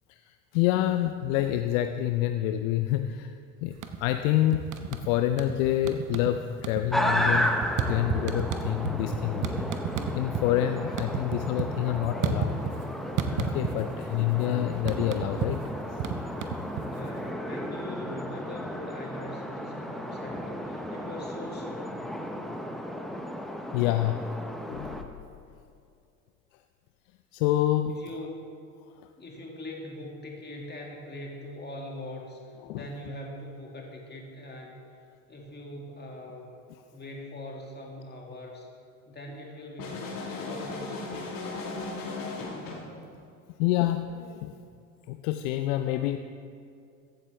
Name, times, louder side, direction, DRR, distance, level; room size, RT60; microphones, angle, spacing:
voice 1, 0.1-7.6 7.9-9.7 10.1-12.6 13.3-15.6 23.7-24.3 24.7-25.0 27.3-28.0 32.7-32.8 43.6-44.5 45.1-46.2, left 13 dB, 65° left, 9 dB, 0.6 m, -27 dB
sound 1, 3.7-4.2 4.5-5.6 5.8-6.3 6.6-10.5 10.8-12.9 13.2-14.0 14.3-17.2, right 7 dB, 45° right, 0.9 m, -31 dB
sound 2, 6.9-25.0, equal, ahead, 0.8 m, -34 dB
voice 2, 16.8-22.1 27.9-28.5 29.2-34.8 35.3-36.5 36.9-38.7 39.1-41.2, left 1 dB, 20° left, -1 dB, 2.3 m, -42 dB
sound 3, 39.8-42.9, left 3 dB, 50° left, 1.8 m, -36 dB
14.5 x 8.3 x 3.4 m, 2.4 s
hypercardioid pair, 70°, 44 cm